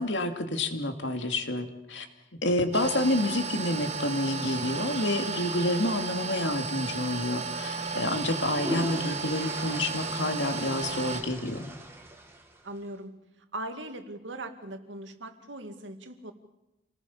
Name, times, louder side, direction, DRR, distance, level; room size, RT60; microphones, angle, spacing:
voice 1, 0.0-2.1 2.4-11.7, left 1 dB, 80° left, 6 dB, 2.5 m, -29 dB
sound 1, 2.7-11.2, right 4 dB, 35° right, 3.1 m, -34 dB
sound 2, 8.5-12.8, right 1 dB, 15° right, 2.3 m, -40 dB
voice 2, 12.6-13.1 13.5-16.3, right 1 dB, 90° right, 6 dB, 2.4 m, -39 dB
27.5 x 19.0 x 7.2 m, 0.93 s
head